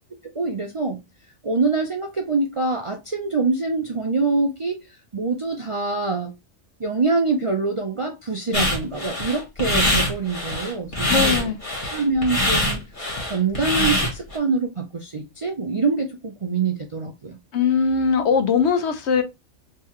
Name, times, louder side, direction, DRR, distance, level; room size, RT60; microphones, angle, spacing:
voice 1, 0.3-1.0 1.4-4.8 5.1-6.3 6.8-11.5 11.8-17.4, right 3 dB, 45° right, 0.4 m, -25 dB
sound 1, 8.5-14.4, left 1 dB, 40° left, 1.8 m, -23 dB
voice 2, 11.1-11.6 17.5-19.2, left 6 dB, 65° left, 1.0 m, -20 dB
3.7 x 3.2 x 3.1 m
omnidirectional pair, 1.3 m